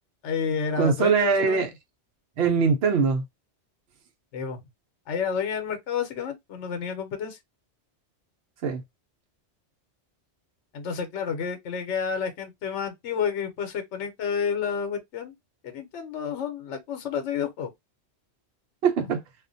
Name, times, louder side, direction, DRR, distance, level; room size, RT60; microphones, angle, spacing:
voice 1, 0.2-1.6 4.3-4.6 5.1-7.4 10.7-15.3 15.6-17.7, left 6 dB, 80° left, 1.0 m, -30 dB
voice 2, 0.8-1.7 2.4-3.2 8.6-8.8 18.8-19.2, right 5 dB, 65° right, 0.8 m, -22 dB
2.4 x 2.1 x 2.5 m
omnidirectional pair, 1.2 m